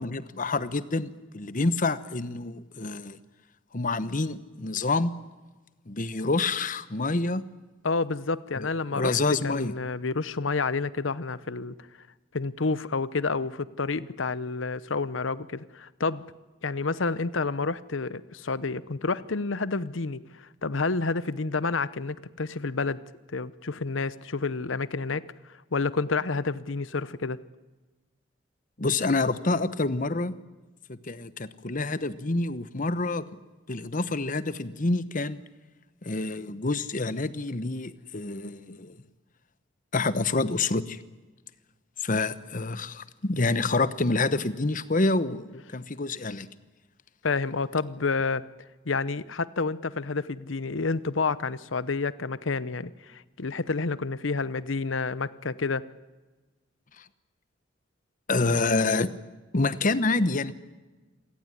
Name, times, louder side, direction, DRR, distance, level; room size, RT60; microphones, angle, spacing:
voice 1, 0.0-3.2 3.7-5.1 5.9-7.4 8.6-9.7 28.8-30.3 30.9-33.2 33.7-35.4 36.0-39.0 39.9-41.0 42.0-46.5 57.0-57.1 58.3-59.1 59.5-60.5, left 3 dB, 45° left, 15 dB, 1.1 m, -27 dB
voice 2, 7.8-9.2 9.4-11.7 12.3-16.2 16.6-20.2 20.6-23.0 23.3-25.2 25.5-27.4 47.2-48.4 48.8-55.8, left 4 dB, 85° left, 17 dB, 0.9 m, -29 dB
27.5 x 17.0 x 9.9 m, 1.2 s
head